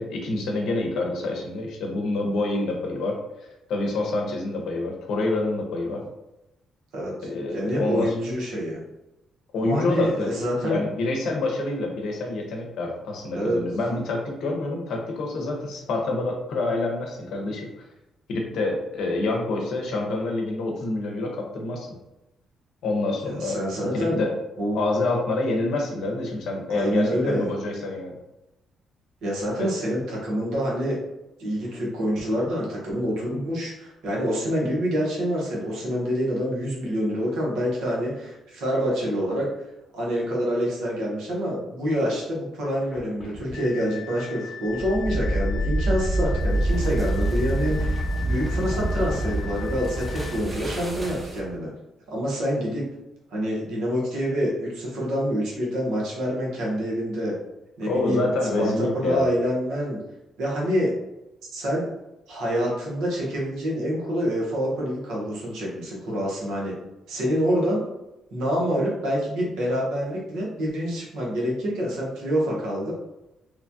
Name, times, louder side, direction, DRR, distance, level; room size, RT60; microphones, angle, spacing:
voice 1, 0.0-3.2 3.7-6.0 7.2-8.1 9.5-10.3 10.6-17.7 18.3-21.9 22.8-24.3 24.7-28.2 29.6-29.7 57.8-59.3, left 2 dB, 75° left, 1 dB, 0.7 m, -27 dB
voice 2, 7.5-8.8 9.6-10.8 13.3-13.6 23.2-24.2 24.6-24.8 26.7-27.5 29.2-31.0 31.4-39.5 39.9-51.7 52.1-52.8 53.3-57.3 57.8-58.3 58.6-60.0 60.4-60.9 61.4-61.8 62.3-66.8 67.1-67.8 68.3-72.9, equal, 85° right, -4 dB, 1.0 m, -26 dB
sound 1, 42.8-50.4, left 8 dB, 45° left, 0.8 m, -40 dB
sound 2, 44.7-51.6, right 1 dB, 20° right, 0.8 m, -26 dB
3.0 x 2.2 x 2.6 m, 0.95 s
cardioid pair, 90°, 0 cm